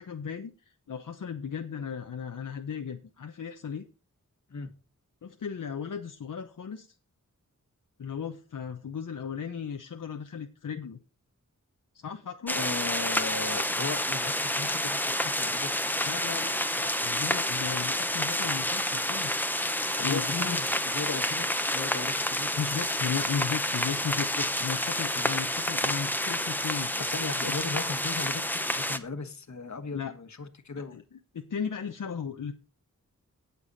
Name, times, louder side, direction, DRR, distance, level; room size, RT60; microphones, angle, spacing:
voice 1, 0.0-3.8 5.2-6.9 8.0-11.0 11.9-12.6 16.0-19.3 20.0-20.6 22.6-24.3 24.6-26.9 27.5-27.7 29.9-30.1 30.9-32.5, left 7 dB, 75° left, 6 dB, 0.9 m, -36 dB
voice 2, 12.5-15.7 20.0-22.6 24.4-24.5 25.1-25.2 27.0-31.0, left 4 dB, 60° left, 9 dB, 1.5 m, -37 dB
sound 1, 12.5-29.0, left 1 dB, 5° left, 1.0 m, -29 dB
17.5 x 7.0 x 4.1 m, 0.34 s
wide cardioid pair, 100°, 32 cm